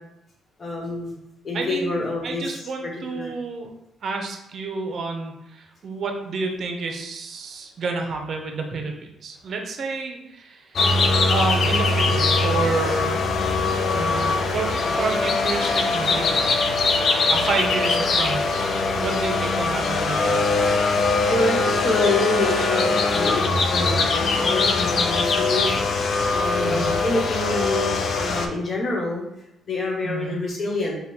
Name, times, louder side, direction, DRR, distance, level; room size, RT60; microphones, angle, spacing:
voice 1, 0.6-1.2 1.4-3.3 21.3-25.8 26.3-29.2 29.6-31.0, left 2 dB, 40° left, -1 dB, 1.1 m, -27 dB
voice 2, 1.5-3.7 4.0-13.2 13.9-16.4 17.3-18.5 18.9-20.9 26.5-26.9 30.0-30.4, right 4 dB, 55° right, 3 dB, 0.7 m, -30 dB
sound 1, 10.8-28.5, left 3 dB, 55° left, 0.5 m, -22 dB
4.3 x 2.3 x 3.5 m, 0.84 s
cardioid pair, 90°, 0 cm